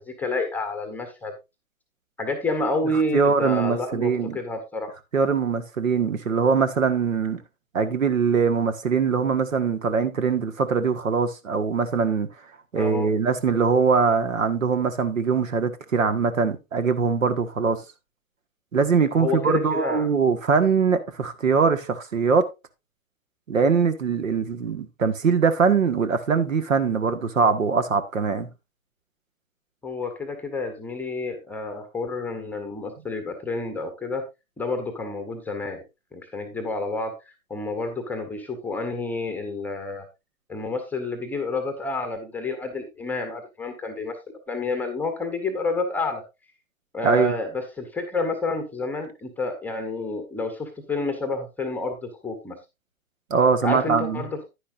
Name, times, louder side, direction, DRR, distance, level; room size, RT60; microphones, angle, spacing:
voice 1, 0.0-1.3 2.2-4.9 12.7-13.1 19.1-20.1 29.8-34.2 34.6-35.8 36.1-37.1 37.5-40.0 40.5-44.1 44.5-46.2 46.9-52.5 53.6-54.5, left 3 dB, 5° left, 1.1 m, -29 dB
voice 2, 3.1-4.4 5.1-7.4 7.7-12.3 12.7-17.8 18.7-22.4 23.5-28.5 47.0-47.3 53.3-54.2, right 5 dB, 65° right, 1.7 m, -22 dB
10.0 x 10.0 x 2.5 m
figure-of-eight pair, 125°, 42 cm